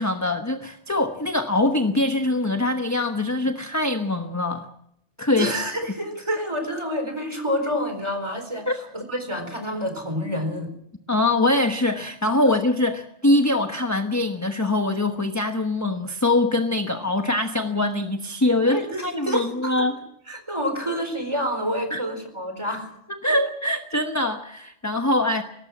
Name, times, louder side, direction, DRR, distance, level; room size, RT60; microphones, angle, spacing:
voice 1, 0.0-4.7 5.2-5.5 8.7-8.8 11.1-19.9 21.9-22.0 23.1-25.4, left 2 dB, 15° left, 6 dB, 1.1 m, -23 dB
voice 2, 5.4-10.7 18.6-19.5 19.8-19.9 20.3-22.9, equal, 25° right, 6 dB, 4.5 m, -28 dB
21.5 x 18.5 x 7.4 m, 0.75 s
omnidirectional pair, 1.2 m